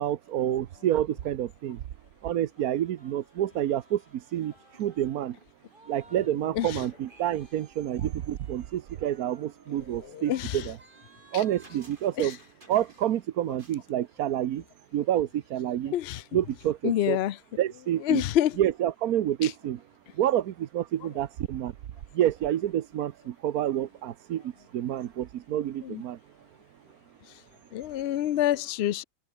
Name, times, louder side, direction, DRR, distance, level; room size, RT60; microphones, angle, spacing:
voice 1, 0.0-1.8 2.2-5.4 5.9-10.8 11.3-12.4 12.7-14.6 14.9-15.9 16.3-17.2 17.6-18.2 18.6-19.8 20.1-21.7 22.1-26.2, right 11 dB, 70° right, 1.3 m, -28 dB
sound 1, 2.6-6.3 6.5-13.2 13.5-13.8, right 2 dB, 30° right, 3.7 m, -56 dB
voice 2, 9.9-10.7 11.3-11.4 12.2-12.4 15.9-16.2 16.8-17.4 18.0-18.6 19.4-19.5 25.8-26.0 27.7-29.0, left 12 dB, 75° left, 0.5 m, -27 dB
open air
omnidirectional pair, 1.7 m